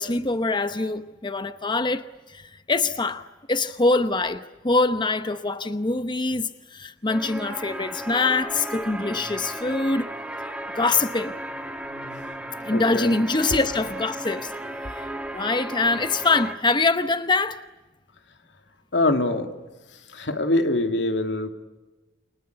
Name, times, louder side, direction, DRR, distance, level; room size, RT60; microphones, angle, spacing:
voice 1, 0.0-10.1 10.7-11.3 12.6-14.5 14.9-17.6, left 3 dB, 25° left, 0.9 m, -24 dB
sound 1, 7.1-16.5, right 1 dB, 5° right, 2.7 m, -35 dB
voice 2, 12.7-13.1 18.9-19.5 20.1-21.5, left 2 dB, 85° left, 2.7 m, -23 dB
30.0 x 23.5 x 8.1 m
head